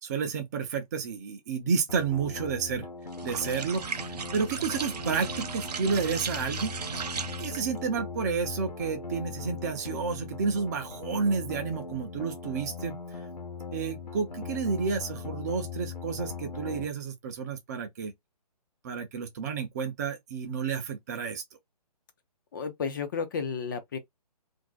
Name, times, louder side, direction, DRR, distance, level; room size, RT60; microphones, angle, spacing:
voice 1, 0.0-2.9 3.2-6.7 7.4-13.0 13.7-18.1 18.8-21.4, right 5 dB, 25° right, 0.5 m, -31 dB
sound 1, 1.9-16.9, left 5 dB, 85° left, 0.8 m, -40 dB
sound 2, 3.1-7.8, right 6 dB, 75° right, 0.5 m, -36 dB
voice 2, 22.5-24.0, left 5 dB, 30° left, 0.5 m, -32 dB
2.6 x 2.1 x 3.8 m
figure-of-eight pair, 140°, 21 cm